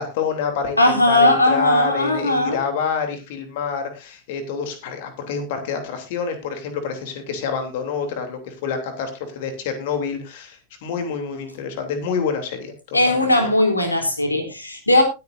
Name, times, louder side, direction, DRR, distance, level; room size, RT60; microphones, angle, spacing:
voice 1, 0.0-13.5, left 6 dB, 50° left, 6 dB, 3.3 m, -27 dB
voice 2, 0.8-2.6 12.9-15.0, left 1 dB, 80° left, 4 dB, 3.5 m, -18 dB
20.0 x 9.4 x 2.7 m, 0.26 s
figure-of-eight pair, 90°, 0 cm